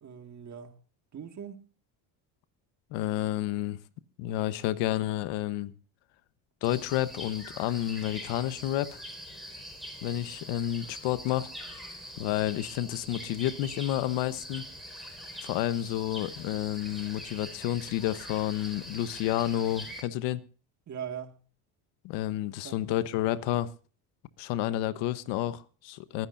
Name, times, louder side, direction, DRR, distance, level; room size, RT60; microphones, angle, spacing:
voice 1, 0.0-0.8 1.1-1.6 20.9-21.4 22.6-23.0, right 8 dB, 40° right, 2.0 m, -41 dB
voice 2, 2.9-3.8 4.2-5.7 6.6-9.0 10.0-11.5 12.2-14.7 15.4-20.4 22.0-23.7 24.4-26.3, left 13 dB, 85° left, 1.1 m, -30 dB
sound 1, 6.6-20.0, equal, ahead, 5.0 m, -43 dB
24.5 x 10.5 x 2.6 m
cardioid pair, 105°, 41 cm